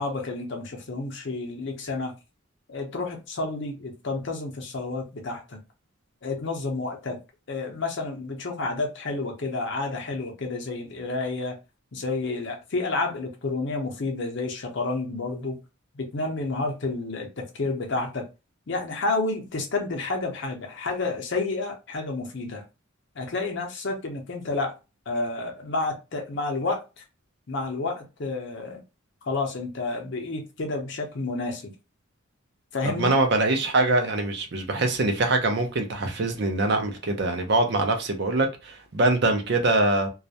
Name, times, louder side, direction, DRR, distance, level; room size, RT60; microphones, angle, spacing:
voice 1, 0.0-2.1 2.7-5.6 6.2-7.2 7.5-11.6 11.9-15.6 15.9-18.3 18.7-22.6 23.2-24.7 25.1-27.0 27.5-28.8 29.3-31.7 32.7-33.1, left 3 dB, 60° left, 0.6 m, -30 dB
voice 2, 32.8-40.1, right 2 dB, 55° right, 0.5 m, -23 dB
2.3 x 2.1 x 2.7 m
head